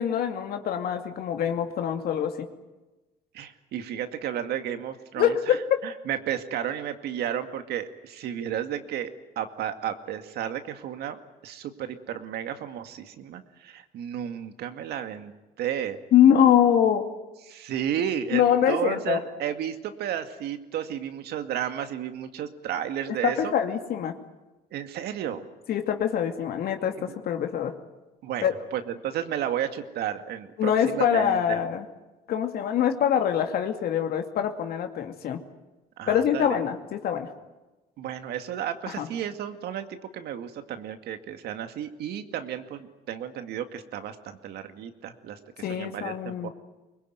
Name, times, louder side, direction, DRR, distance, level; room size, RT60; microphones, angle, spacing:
voice 1, 0.0-2.5 5.2-5.8 16.1-17.1 18.3-19.2 23.1-24.2 25.7-27.7 28.4-28.5 30.6-31.9 32.3-35.4 36.1-37.3 38.9-39.1 45.6-46.5, left 9 dB, 65° left, 5 dB, 2.5 m, -24 dB
voice 2, 3.3-5.6 5.8-11.2 11.4-16.0 17.5-23.5 24.7-25.5 27.1-27.2 28.2-28.4 28.7-31.6 36.0-36.6 38.0-45.4 45.7-46.5, right 10 dB, 75° right, 8 dB, 2.2 m, -33 dB
24.0 x 21.5 x 9.4 m, 1.1 s
cardioid pair, 110°, 17 cm